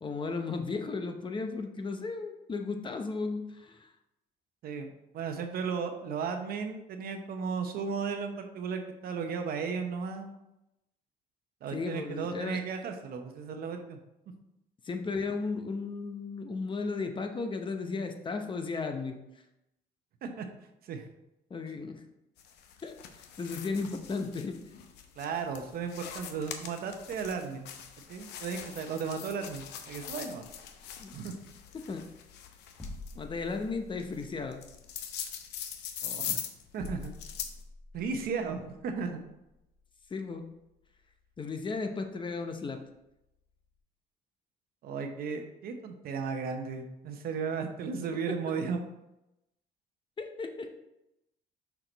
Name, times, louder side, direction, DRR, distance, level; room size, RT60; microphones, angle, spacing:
voice 1, 0.0-3.9 11.7-12.6 14.8-19.2 21.5-22.0 22.8-23.0 23.4-24.6 31.0-31.4 31.7-32.0 33.1-34.6 40.1-40.5 41.4-42.8 50.2-50.8, left 4 dB, 30° left, 6 dB, 0.7 m, -35 dB
voice 2, 4.6-10.4 11.6-14.0 20.2-20.5 20.8-21.1 25.2-27.7 28.1-30.4 31.1-31.3 36.0-36.4 36.7-37.1 37.9-39.2 44.8-48.8, right 5 dB, 65° right, 5 dB, 0.9 m, -35 dB
sound 1, 22.4-37.6, left 9 dB, 85° left, 0.7 m, -42 dB
sound 2, 31.7-43.8, left 2 dB, 10° left, 1.2 m, -51 dB
6.1 x 4.7 x 3.9 m, 0.89 s
cardioid pair, 110°, 17 cm